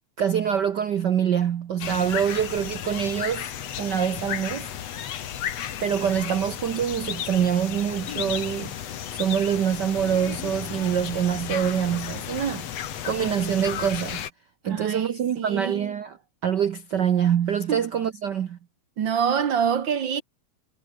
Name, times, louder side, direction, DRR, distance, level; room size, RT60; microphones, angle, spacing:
voice 1, 0.2-3.5 3.8-4.7 5.8-12.7 13.0-14.3 14.6-16.2 16.4-18.6, right 8 dB, 85° right, 0.9 m, -25 dB
sound 1, 1.8-14.3, left 10 dB, 60° left, 2.6 m, -34 dB
voice 2, 14.6-15.9 17.7-17.8 19.0-20.2, right 7 dB, 55° right, 1.5 m, -26 dB
omnidirectional pair, 3.4 m